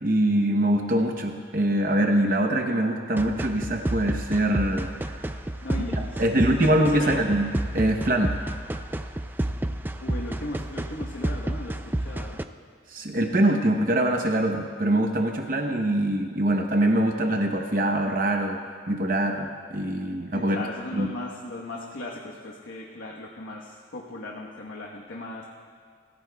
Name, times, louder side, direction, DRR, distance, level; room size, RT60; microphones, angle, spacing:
voice 1, 0.0-5.1 5.9-8.3 12.9-18.6 18.9-20.7 20.9-21.1, right 1 dB, 45° right, 2 dB, 0.8 m, -24 dB
sound 1, 3.2-12.4, right 1 dB, 10° right, 0.3 m, -30 dB
voice 2, 5.6-6.6 6.9-7.2 10.0-12.4 20.3-25.5, left 2 dB, 80° left, -2 dB, 1.2 m, -37 dB
25.0 x 15.5 x 2.3 m, 2.1 s
head